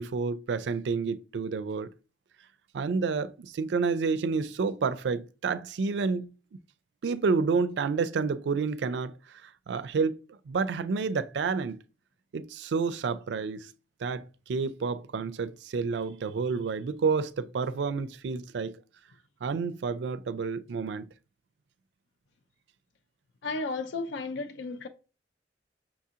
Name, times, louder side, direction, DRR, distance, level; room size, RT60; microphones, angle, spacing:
voice 1, 0.0-1.9 2.7-6.3 7.0-9.1 9.4-10.2 10.5-11.8 12.3-13.7 14.0-18.8 19.4-21.1, right 4 dB, 75° right, 0.4 m, -29 dB
voice 2, 23.4-24.9, left 3 dB, 80° left, 0.4 m, -33 dB
5.9 x 2.4 x 2.8 m
head